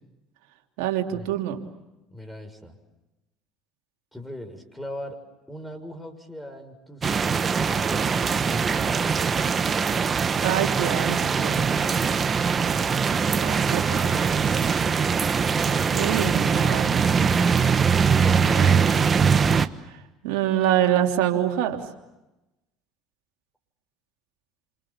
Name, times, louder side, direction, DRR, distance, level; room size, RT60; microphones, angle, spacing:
voice 1, 0.8-1.6 10.4-11.6 13.3-14.6 15.9-17.1 18.4-18.9 19.9-21.8, right 11 dB, 75° right, 2 dB, 3.1 m, -26 dB
voice 2, 2.1-2.8 4.1-5.2 5.5-9.9 10.9-12.3 17.1-18.8, left 1 dB, 5° left, 6 dB, 6.5 m, -40 dB
sound 1, 7.0-19.7, right 6 dB, 35° right, 1.3 m, -22 dB
28.0 x 28.0 x 7.4 m, 0.99 s
hypercardioid pair, 80°, 0 cm